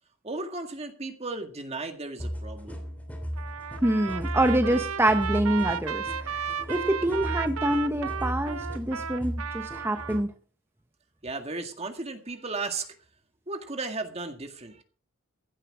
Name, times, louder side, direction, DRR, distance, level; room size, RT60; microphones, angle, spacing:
voice 1, 0.2-2.9 11.2-13.0 13.5-14.8, right 3 dB, 30° right, 6 dB, 2.0 m, -35 dB
sound 1, 2.2-10.3, equal, 5° left, 3.0 m, -36 dB
Trumpet, 3.4-10.2, right 7 dB, 90° right, 0.8 m, -34 dB
voice 2, 3.8-10.3, right 1 dB, 10° right, 6 dB, 0.8 m, -26 dB
15.5 x 10.5 x 4.9 m, 0.40 s
head